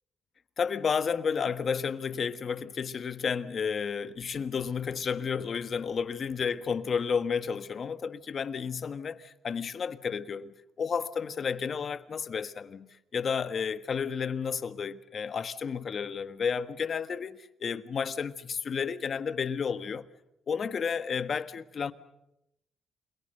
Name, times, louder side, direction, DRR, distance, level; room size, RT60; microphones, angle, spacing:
voice 1, 0.6-20.0 20.5-21.9, left 6 dB, 50° left, 1.4 m, -32 dB
28.5 x 22.5 x 6.7 m
cardioid pair, 90°, 0 cm